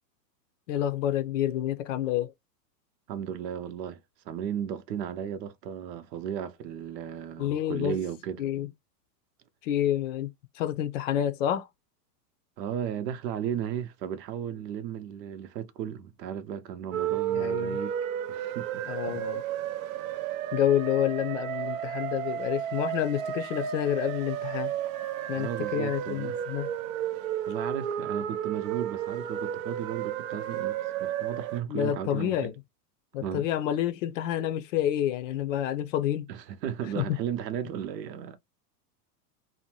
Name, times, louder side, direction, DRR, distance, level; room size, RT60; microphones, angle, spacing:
voice 1, 0.7-2.3 7.4-8.0 8.4-8.7 9.6-11.7 17.3-17.8 18.9-19.4 20.5-24.7 25.3-26.7 31.7-32.5 33.1-36.3 37.0-37.2, left 11 dB, 50° left, 0.5 m, -28 dB
voice 2, 3.1-4.0 4.3-8.4 12.6-18.0 18.3-19.2 25.3-26.4 27.5-32.5 33.2-33.4 36.3-38.4, right 9 dB, 85° right, 0.8 m, -35 dB
sound 1, 16.9-31.6, right 10 dB, 55° right, 0.5 m, -33 dB
2.7 x 2.1 x 2.9 m
supercardioid pair, 150°, 49 cm